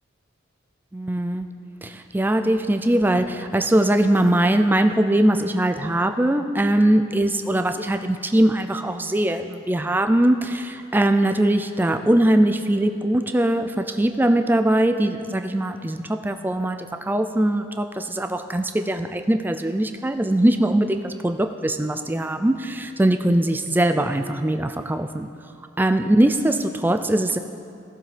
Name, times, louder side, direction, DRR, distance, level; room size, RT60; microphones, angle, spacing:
voice 1, 0.9-1.5 1.8-25.3 25.8-27.4, right 1 dB, 10° right, 7 dB, 0.3 m, -21 dB
16.0 x 7.4 x 3.3 m, 2.6 s
head